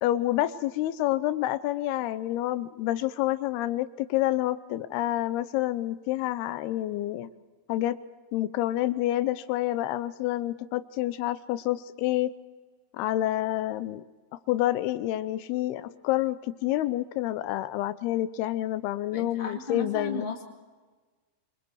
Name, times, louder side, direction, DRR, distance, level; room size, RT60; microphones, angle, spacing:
voice 1, 0.0-7.3 7.7-8.0 8.3-12.3 12.9-14.0 14.5-20.3, left 14 dB, 90° left, 14 dB, 2.8 m, -28 dB
voice 2, 19.1-20.4, left 3 dB, 20° left, 2 dB, 1.6 m, -35 dB
25.5 x 25.0 x 4.8 m, 1.3 s
omnidirectional pair, 4.4 m